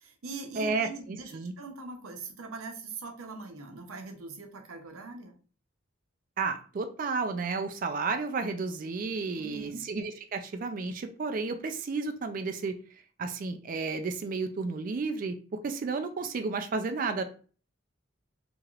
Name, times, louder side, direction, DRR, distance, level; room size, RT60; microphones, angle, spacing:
voice 1, 0.0-5.4 9.4-9.8, right 3 dB, 90° right, 4 dB, 0.6 m, -42 dB
voice 2, 0.6-1.5 6.4-12.8 13.2-15.4 15.6-17.2, right 4 dB, 40° right, 7 dB, 0.3 m, -32 dB
3.0 x 2.9 x 2.4 m, 0.40 s
head